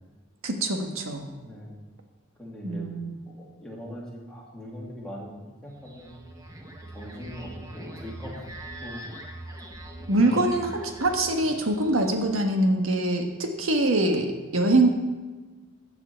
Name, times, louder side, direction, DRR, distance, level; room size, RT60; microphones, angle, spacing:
voice 1, 0.4-1.3 2.6-3.1 10.1-14.9, right 2 dB, 85° right, 3 dB, 1.4 m, -24 dB
voice 2, 1.4-1.7 2.4-2.9 3.3-6.1 6.9-8.5 8.8-9.0 10.0-10.4, equal, 5° left, -5 dB, 2.6 m, -41 dB
sound 1, 5.7-12.4, right 1 dB, 15° right, 1.1 m, -43 dB
15.5 x 8.0 x 4.5 m, 1.3 s
head